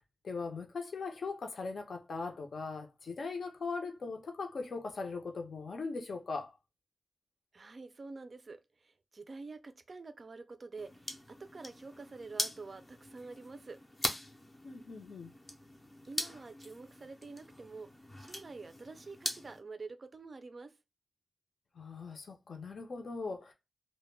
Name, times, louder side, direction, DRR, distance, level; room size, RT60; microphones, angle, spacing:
voice 1, 0.0-6.5 14.6-15.3 21.7-23.5, left 4 dB, 65° left, 0.6 m, -40 dB
voice 2, 7.5-8.6 9.1-11.1 11.4-13.8 16.1-17.9 18.2-20.7, right 3 dB, 40° right, 0.3 m, -47 dB
sound 1, 10.8-19.6, left 1 dB, 15° left, 0.5 m, -42 dB
2.2 x 2.1 x 3.2 m
wide cardioid pair, 175°, 0 cm